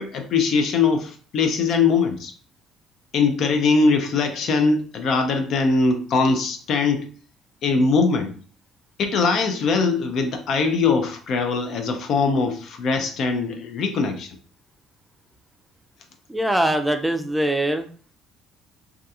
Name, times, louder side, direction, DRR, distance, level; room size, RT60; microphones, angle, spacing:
voice 1, 0.0-2.3 3.1-7.0 7.6-8.3 9.0-14.3, left 4 dB, 60° left, 5 dB, 0.5 m, -21 dB
voice 2, 16.3-17.9, right 1 dB, 5° right, 6 dB, 0.4 m, -22 dB
2.3 x 2.3 x 2.7 m, 0.41 s
hypercardioid pair, 65°, 0 cm